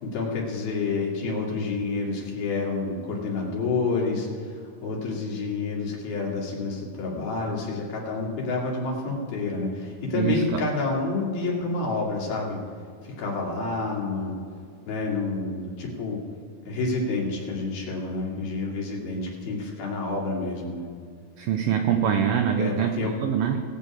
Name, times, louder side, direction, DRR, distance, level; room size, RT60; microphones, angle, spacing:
voice 1, 0.0-12.6 13.0-14.3 14.9-16.2 16.7-20.9 22.5-23.2, left 3 dB, 70° left, -3 dB, 4.2 m, -29 dB
voice 2, 10.2-10.6 21.4-23.6, right 8 dB, 80° right, 5 dB, 1.9 m, -24 dB
19.5 x 8.3 x 4.9 m, 2.2 s
omnidirectional pair, 4.5 m